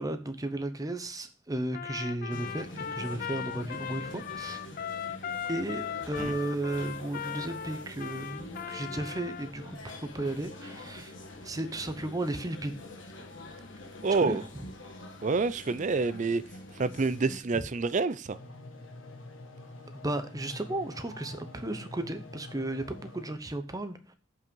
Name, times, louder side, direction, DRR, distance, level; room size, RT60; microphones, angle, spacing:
voice 1, 0.0-4.6 5.5-11.1 11.4-12.8 14.2-14.7 17.5-17.6 19.9-24.1, right 1 dB, 20° right, 0.9 m, -34 dB
Trumpet, 1.7-9.5, left 8 dB, 50° left, 0.4 m, -38 dB
sound 1, 2.3-17.4, left 2 dB, 70° left, 1.7 m, -45 dB
voice 2, 14.0-14.4 15.2-16.4 16.8-18.4, right 4 dB, 40° right, 0.5 m, -27 dB
sound 2, 18.3-23.3, left 2 dB, 85° left, 1.5 m, -46 dB
7.6 x 5.6 x 5.4 m
head